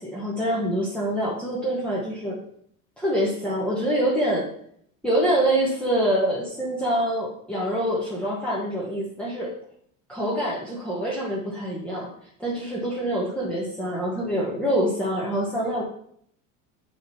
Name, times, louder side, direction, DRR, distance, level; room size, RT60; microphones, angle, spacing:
voice 1, 0.0-2.4 3.0-4.5 5.0-9.5 10.1-12.1 12.4-15.8, right 1 dB, 5° left, -6 dB, 1.3 m, -25 dB
7.3 x 5.1 x 4.2 m, 0.66 s
cardioid pair, 140°, 40 cm